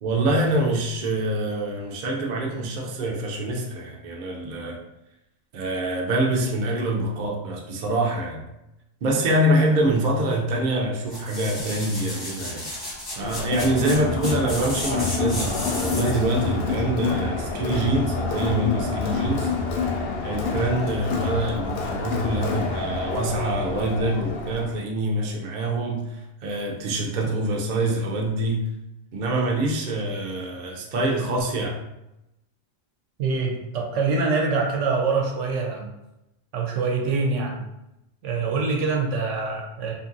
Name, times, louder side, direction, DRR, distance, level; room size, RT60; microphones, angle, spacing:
voice 1, 0.0-4.8 5.5-8.4 9.0-12.7 13.2-19.5 20.2-28.7 29.1-31.8, right 1 dB, 55° right, -1 dB, 0.5 m, -25 dB
sound 1, 11.1-16.3 16.8-16.9, left 1 dB, 25° left, 0.6 m, -34 dB
Crowd, 13.2-24.8, left 4 dB, 65° left, 0.7 m, -27 dB
voice 2, 33.2-35.9 36.5-37.6 38.2-39.9, right 4 dB, 75° right, 1 dB, 0.9 m, -24 dB
2.7 x 2.5 x 2.5 m, 0.90 s
omnidirectional pair, 1.3 m